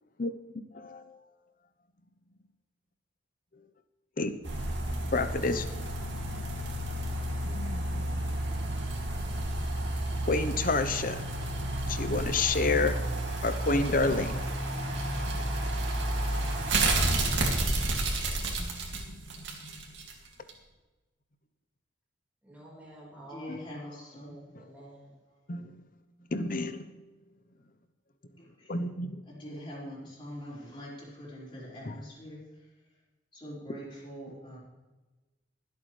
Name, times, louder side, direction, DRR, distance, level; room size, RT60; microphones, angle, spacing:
voice 1, 0.7-1.2 4.2-4.4 5.1-5.7 7.4-8.3 10.3-11.3 11.6-13.0 13.4-15.5 18.4-19.8 23.5-23.6 25.5-25.8 26.3-26.9 28.7-29.2 31.8-32.0, left 3 dB, 50° left, 10 dB, 0.9 m, -31 dB
sound 1, 4.4-20.1 20.5-20.6, right 1 dB, 80° right, 2.4 m, -31 dB
voice 2, 22.4-23.6 24.2-25.1, right 1 dB, 10° right, -6 dB, 4.5 m, -49 dB
voice 3, 23.2-24.4 28.4-28.8 29.3-32.4 33.3-34.6, equal, 25° left, -7 dB, 5.3 m, -43 dB
24.0 x 8.1 x 3.3 m, 1.2 s
head